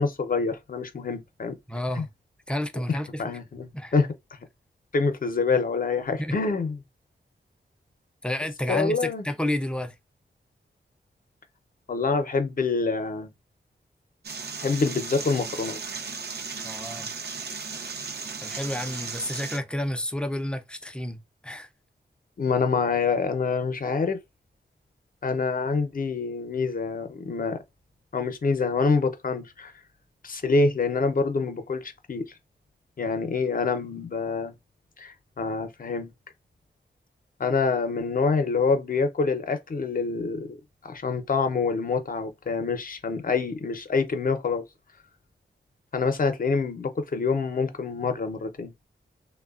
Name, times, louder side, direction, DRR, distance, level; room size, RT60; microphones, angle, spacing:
voice 1, 0.0-1.6 2.0-2.1 2.9-4.4 4.9-6.8 8.7-9.2 11.9-13.3 14.6-15.8 22.4-24.2 25.2-27.6 28.1-29.7 30.2-32.2 33.0-34.5 35.0-36.1 37.4-40.6 40.8-44.6 45.9-48.7, left 4 dB, 50° left, 0.6 m, -26 dB
voice 2, 1.7-2.1 2.5-3.2 3.7-3.9 6.2-6.3 8.2-10.0 16.6-17.1 18.4-21.7, left 1 dB, 5° left, 0.4 m, -30 dB
sound 1, 14.2-19.6, right 5 dB, 60° right, 0.5 m, -36 dB
3.1 x 2.1 x 2.3 m
wide cardioid pair, 110°, 19 cm